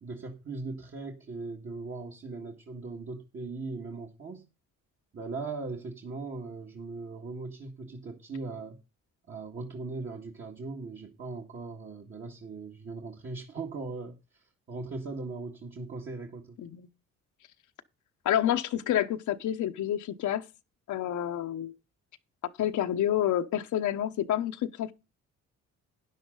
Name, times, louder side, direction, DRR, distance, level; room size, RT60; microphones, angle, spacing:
voice 1, 0.0-4.5 5.1-8.8 9.3-16.6, right 3 dB, 45° right, 2.0 m, -39 dB
voice 2, 18.2-20.5 20.9-21.7 22.6-24.9, left 11 dB, 75° left, 1.0 m, -28 dB
12.0 x 10.0 x 3.9 m
cardioid pair, 90°, 30 cm